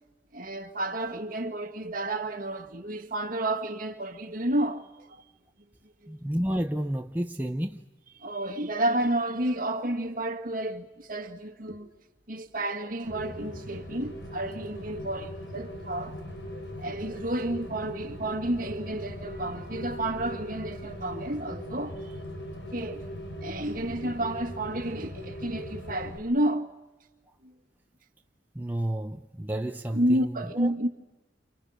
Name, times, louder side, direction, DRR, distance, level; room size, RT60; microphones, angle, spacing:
voice 1, 0.3-5.5 6.0-6.1 8.2-11.9 12.3-16.2 16.5-22.1 22.7-23.0 23.4-26.7 27.4-27.5 29.9-30.9, right 1 dB, 50° right, 2.1 m, -31 dB
voice 2, 6.1-7.8 28.5-30.7, right 1 dB, 10° right, 0.9 m, -31 dB
Rain, 13.0-26.2, equal, 80° left, 4.7 m, -40 dB
30.0 x 29.0 x 6.5 m
head